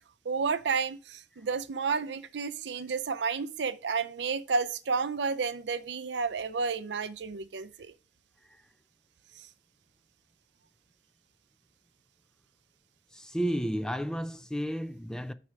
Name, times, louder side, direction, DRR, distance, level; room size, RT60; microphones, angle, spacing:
voice 1, 0.2-7.9 9.4-9.5, right 5 dB, 70° right, 0.5 m, -31 dB
voice 2, 13.1-15.3, equal, 5° left, 0.3 m, -32 dB
6.3 x 4.2 x 5.8 m
head